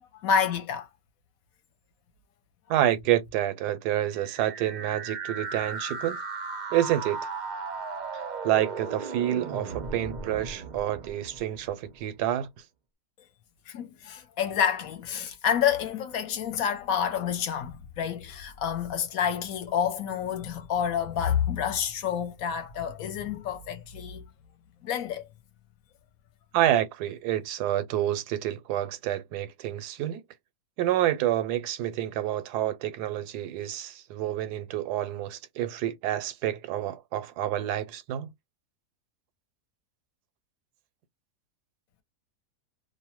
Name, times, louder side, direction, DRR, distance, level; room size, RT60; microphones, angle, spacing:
voice 1, 0.1-0.9 13.7-24.3 24.8-25.3, left 8 dB, 70° left, 1.0 m, -28 dB
voice 2, 2.7-6.2 6.7-7.2 8.4-12.5 26.5-30.2 30.8-38.3, right 12 dB, 85° right, 1.1 m, -28 dB
sound 1, 4.1-12.0, right 4 dB, 70° right, 0.4 m, -36 dB
2.6 x 2.1 x 2.9 m
omnidirectional pair, 1.7 m